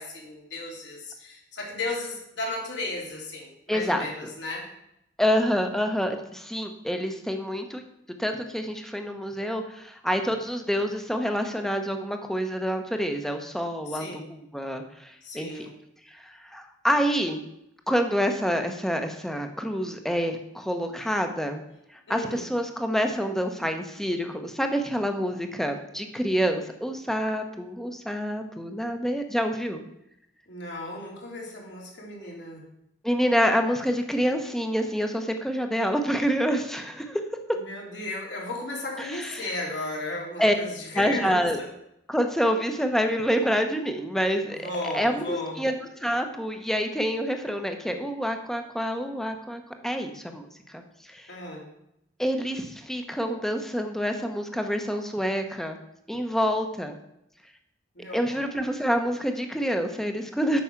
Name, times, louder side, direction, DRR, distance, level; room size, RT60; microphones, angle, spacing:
voice 1, 0.0-4.7 13.9-14.2 15.2-15.7 22.1-22.4 30.5-32.6 37.5-41.7 44.5-45.6 51.3-51.6 57.9-58.5, left 2 dB, 70° left, -1 dB, 2.8 m, -35 dB
voice 2, 3.7-4.3 5.2-7.8 8.2-15.7 16.1-17.4 17.9-21.6 21.9-29.8 33.0-37.2 39.0-39.6 40.4-40.6 40.9-41.6 42.1-50.5 50.7-50.8 51.1-51.3 52.2-55.8 56.1-57.0 58.1-60.6, equal, ahead, 5 dB, 0.9 m, -27 dB
8.5 x 6.3 x 5.8 m, 0.80 s
head